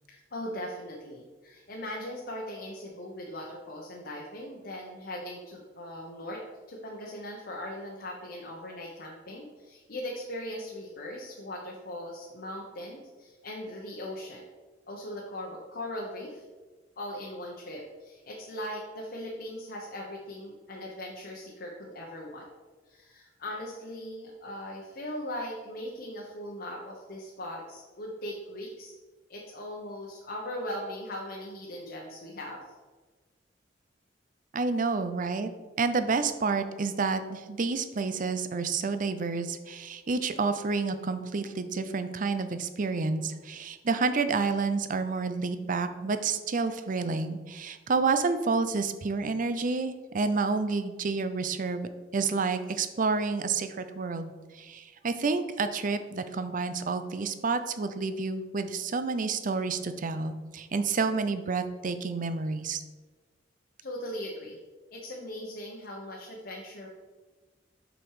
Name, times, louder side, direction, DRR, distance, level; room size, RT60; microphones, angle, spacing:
voice 1, 0.1-6.4 6.7-14.5 14.9-16.4 17.0-22.5 22.9-29.0 29.3-32.6 63.8-64.6 64.9-66.9, left 1 dB, 55° left, -2 dB, 1.0 m, -39 dB
voice 2, 34.5-35.5 35.8-62.8, right 4 dB, 45° right, 10 dB, 0.5 m, -29 dB
6.1 x 5.2 x 4.8 m, 1.3 s
head